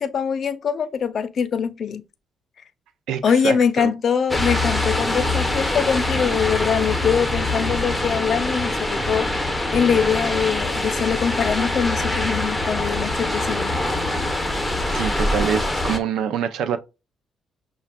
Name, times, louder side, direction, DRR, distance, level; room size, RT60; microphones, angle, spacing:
voice 1, 0.0-2.0 3.2-13.8, left 7 dB, 55° left, 0.6 m, -23 dB
voice 2, 3.1-3.9 14.9-16.8, right 8 dB, 80° right, 0.5 m, -25 dB
sound 1, 4.3-16.0, left 2 dB, 5° left, 0.9 m, -24 dB
6.5 x 2.3 x 2.3 m
cardioid pair, 90°, 0 cm